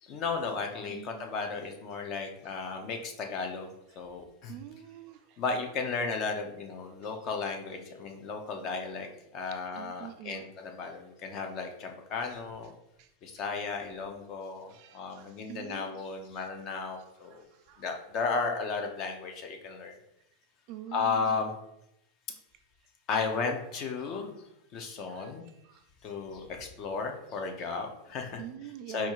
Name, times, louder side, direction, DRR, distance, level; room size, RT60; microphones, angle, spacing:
voice 1, 0.0-4.6 5.4-9.1 9.3-12.7 13.2-17.5 17.8-20.0 20.9-21.5 23.1-24.4 24.7-25.4 26.0-28.4 28.9-29.1, left 4 dB, 30° left, 4 dB, 0.6 m, -34 dB
voice 2, 0.9-1.3 4.5-5.4 9.4-10.5 13.0-13.1 14.7-16.0 17.2-17.8 20.7-21.4 25.1-25.9 27.7-27.8 28.4-29.1, right 12 dB, 45° right, 8 dB, 0.3 m, -46 dB
4.2 x 2.4 x 4.5 m, 0.80 s
supercardioid pair, 165°, 0 cm